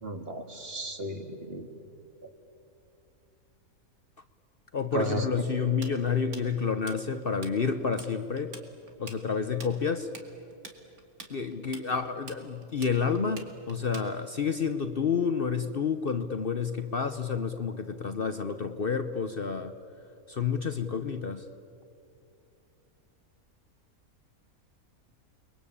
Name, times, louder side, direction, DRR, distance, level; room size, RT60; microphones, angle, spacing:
voice 1, 0.0-1.7 4.9-5.3, right 1 dB, 45° right, 5 dB, 2.3 m, -34 dB
voice 2, 4.7-8.5 9.0-10.1 11.3-19.7 20.3-21.5, left 6 dB, 45° left, 9 dB, 1.0 m, -29 dB
Tools, 5.8-7.5 7.8-8.1 8.4-14.4, right 4 dB, 85° right, 2.8 m, -46 dB
29.5 x 22.5 x 8.6 m, 2.7 s
omnidirectional pair, 1.5 m